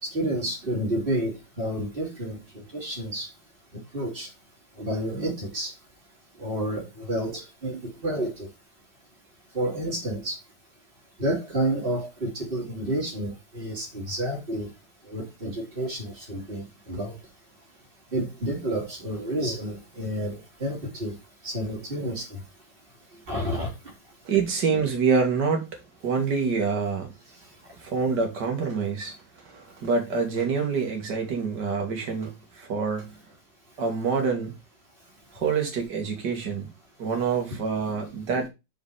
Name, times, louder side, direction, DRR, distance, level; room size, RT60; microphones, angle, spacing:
voice 1, 0.0-3.3 3.9-4.3 4.8-5.7 6.4-8.5 9.5-10.4 11.2-14.7 15.0-17.2 18.1-21.2 21.4-22.4 23.3-23.7 38.0-38.1, right 1 dB, 30° right, 3.1 m, -30 dB
voice 2, 24.3-27.1 27.8-33.2 33.8-34.5 35.3-36.7 37.0-38.5, right 5 dB, 65° right, 2.4 m, -26 dB
6.2 x 5.1 x 4.8 m
omnidirectional pair, 2.0 m